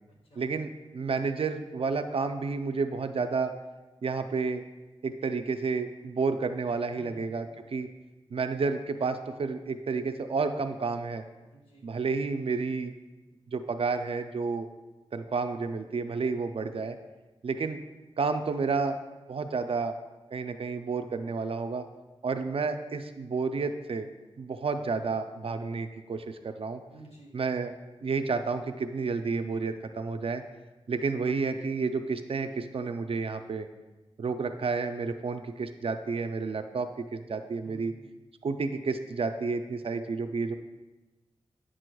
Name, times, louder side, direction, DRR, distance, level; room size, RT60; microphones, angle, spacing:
voice 1, 0.4-3.5 4.0-4.6 5.0-7.9 8.3-11.2 11.8-12.9 13.5-14.7 15.1-17.0 17.4-17.8 18.2-19.0 19.3-19.9 20.3-21.9 22.2-24.1 24.4-26.8 27.3-27.7 28.0-30.4 30.9-33.7 34.2-37.9 38.4-40.5, right 4 dB, 65° right, 8 dB, 0.4 m, -30 dB
voice 2, 6.9-7.3 11.5-12.0 26.9-27.4 37.6-37.9, right 2 dB, 80° left, -3 dB, 1.7 m, -52 dB
8.9 x 6.1 x 2.3 m, 1.1 s
wide cardioid pair, 80°, 11 cm